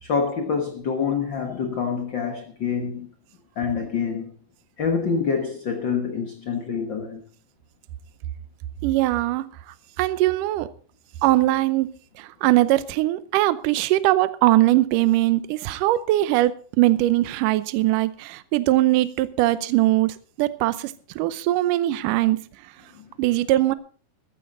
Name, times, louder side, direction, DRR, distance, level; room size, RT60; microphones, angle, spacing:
voice 1, 0.0-3.1 3.5-4.3 4.8-7.2 22.9-23.1, left 6 dB, 80° left, 1.0 m, -26 dB
voice 2, 8.8-9.5 10.0-10.7 11.2-11.9 12.4-16.5 16.8-22.4 23.2-23.7, right 16 dB, 75° right, 2.0 m, -21 dB
14.5 x 14.5 x 3.9 m
omnidirectional pair, 4.5 m